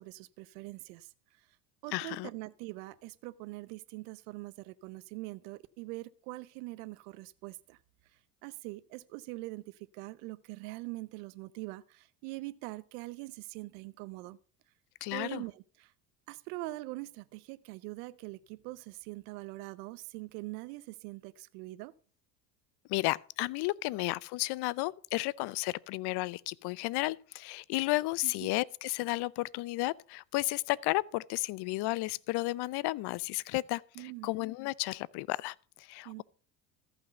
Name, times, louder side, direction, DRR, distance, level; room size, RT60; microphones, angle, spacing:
voice 1, 0.0-1.5 1.8-14.4 15.1-15.9 16.3-21.9 28.2-28.5 34.0-34.3 36.0-36.2, right 20 dB, 70° right, 0.8 m, -43 dB
voice 2, 1.9-2.3 15.0-15.4 22.9-36.2, left 20 dB, 55° left, 0.7 m, -33 dB
14.5 x 6.2 x 6.6 m
hypercardioid pair, 70°, 47 cm